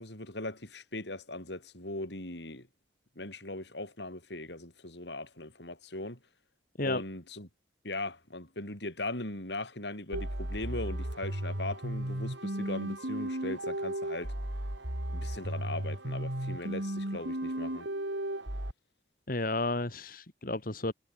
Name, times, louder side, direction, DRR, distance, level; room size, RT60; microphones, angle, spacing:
voice 1, 0.0-2.7 3.2-6.2 6.8-7.5 7.8-14.3 15.1-17.9, left 2 dB, 70° left, 5.6 m, -39 dB
sound 1, 10.1-18.7, right 1 dB, 80° right, 3.8 m, -35 dB
voice 2, 19.3-20.9, left 2 dB, 50° left, 2.3 m, -32 dB
head